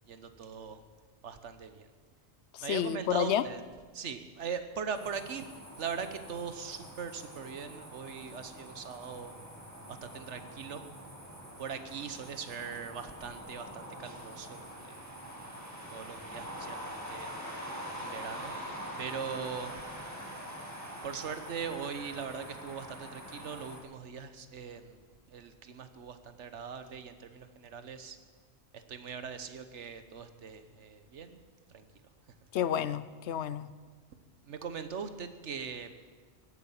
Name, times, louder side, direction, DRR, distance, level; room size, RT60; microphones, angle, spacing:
voice 1, 0.1-0.8 1.2-1.9 2.6-3.6 3.9-5.5 5.8-9.3 9.9-10.8 11.6-15.0 15.9-17.3 18.0-18.5 19.0-19.7 21.0-25.0 25.3-28.2 28.7-31.4 31.7-31.8 34.5-35.9, right 6 dB, 85° right, 10 dB, 1.3 m, -40 dB
voice 2, 2.5-3.4 32.5-33.7, left 10 dB, 75° left, 16 dB, 0.9 m, -30 dB
sound 1, 4.9-23.8, equal, 15° right, 2.2 m, -44 dB
16.0 x 9.6 x 7.3 m, 1.5 s
omnidirectional pair, 1.2 m